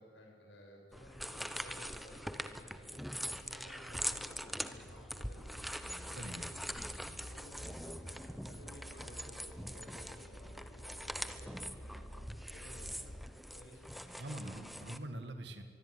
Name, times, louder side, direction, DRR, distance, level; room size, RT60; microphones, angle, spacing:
voice 1, 0.0-6.7 7.2-8.2 8.5-12.2 12.5-13.1 13.5-14.7, left 1 dB, 80° left, 1 dB, 7.6 m, -56 dB
sound 1, 0.9-15.0, equal, ahead, 0.9 m, -43 dB
sound 2, 3.8-13.4, equal, 60° left, 7.5 m, -51 dB
voice 2, 6.1-6.5 7.0-7.2 14.2-15.6, right 1 dB, 70° right, 7 dB, 2.0 m, -44 dB
24.0 x 22.5 x 9.8 m, 2.1 s
head